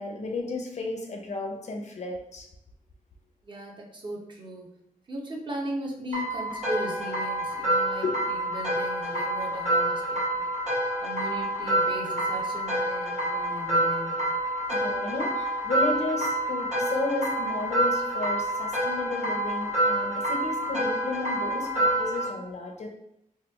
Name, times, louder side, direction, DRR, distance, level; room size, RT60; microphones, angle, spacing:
voice 1, 0.0-2.5 8.0-8.2 11.8-11.9 14.7-22.9, left 2 dB, 50° left, 2 dB, 0.5 m, -33 dB
voice 2, 3.4-4.7 5.1-10.4 11.0-14.2, equal, 35° right, -2 dB, 0.6 m, -37 dB
sound 1, 6.1-22.3, right 1 dB, 50° right, 1.3 m, -27 dB
2.9 x 2.2 x 3.3 m, 0.78 s
wide cardioid pair, 175°, 14 cm